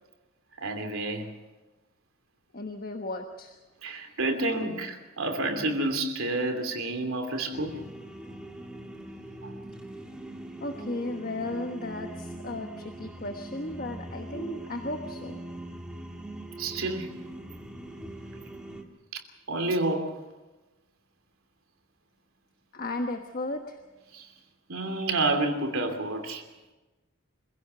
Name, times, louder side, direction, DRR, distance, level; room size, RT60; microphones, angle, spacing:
voice 1, 0.6-1.3 3.8-7.8 9.4-9.5 16.6-17.1 19.1-19.2 19.5-20.1 24.1-24.3 24.7-26.4, right 2 dB, 90° right, 5 dB, 2.9 m, -29 dB
voice 2, 2.5-3.6 10.6-15.4 22.7-23.8, left 2 dB, 45° left, 5 dB, 1.2 m, -35 dB
sound 1, 7.5-18.8, right 1 dB, 5° right, 1.9 m, -41 dB
26.0 x 16.5 x 6.8 m, 1.1 s
head